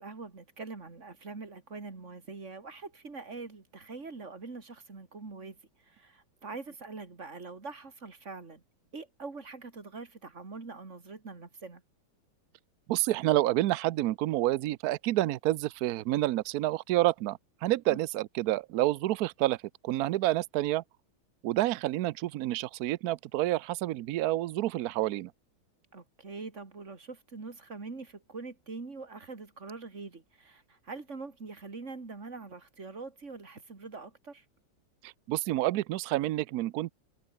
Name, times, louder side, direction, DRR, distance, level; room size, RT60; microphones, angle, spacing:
voice 1, 0.0-5.6 5.8-8.6 8.9-11.8 17.9-18.0 25.9-34.4, right 4 dB, 35° right, 3.0 m, -44 dB
voice 2, 12.9-19.6 19.8-20.8 21.4-25.3 35.0-36.9, right 15 dB, 85° right, 0.8 m, -29 dB
omnidirectional pair, 2.3 m